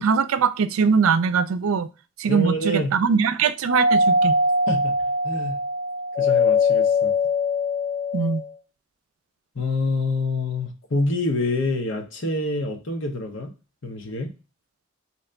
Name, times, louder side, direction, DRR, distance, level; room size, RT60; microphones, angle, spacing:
voice 1, 0.0-1.9 2.2-4.3 8.1-8.4, right 5 dB, 85° right, 0.4 m, -21 dB
voice 2, 2.3-3.0 4.7-4.9 5.2-5.6 6.2-7.1 9.5-13.5 13.8-14.3, left 2 dB, 65° left, 0.9 m, -26 dB
Doorbell, 3.7-8.5, left 2 dB, 45° left, 1.9 m, -21 dB
3.3 x 2.9 x 3.8 m
head